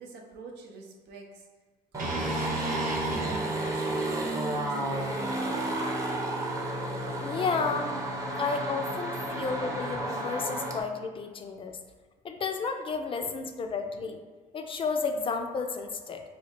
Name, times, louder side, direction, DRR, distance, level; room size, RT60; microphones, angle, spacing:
voice 1, 0.0-1.4 1.9-2.7 3.2-5.2 13.2-13.3 13.6-14.0, right 3 dB, 85° right, 1 dB, 0.7 m, -47 dB
sound 1, 1.9-10.8, right 1 dB, 20° right, 0.6 m, -32 dB
sound 2, 2.0-6.1, right 1 dB, 55° right, 0.8 m, -37 dB
voice 2, 7.2-7.9 8.3-11.8 12.2-14.2 14.5-16.2, left 4 dB, 30° left, 5 dB, 0.3 m, -32 dB
2.9 x 2.4 x 4.2 m, 1.4 s
cardioid pair, 110°, 17 cm